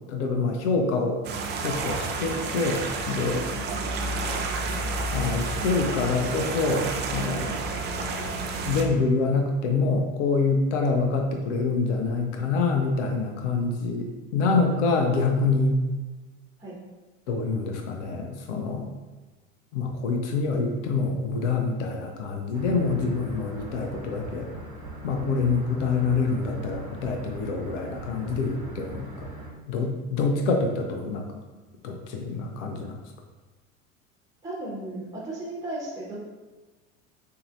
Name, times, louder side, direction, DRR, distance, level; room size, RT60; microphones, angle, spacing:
voice 1, 0.1-1.2 1.6-3.4 5.1-7.5 8.6-15.8 17.3-18.9 19.7-24.5 25.0-29.3 29.7-31.3 31.8-33.0, left 4 dB, 60° left, 3 dB, 0.7 m, -26 dB
sound 1, 1.2-8.8, right 3 dB, 25° right, 0.5 m, -30 dB
sound 2, 22.5-29.5, right 2 dB, 70° right, 1.1 m, -40 dB
voice 2, 34.4-36.2, right 1 dB, 10° right, -5 dB, 1.3 m, -35 dB
6.6 x 2.7 x 2.5 m, 1.2 s
figure-of-eight pair, 75°, 41 cm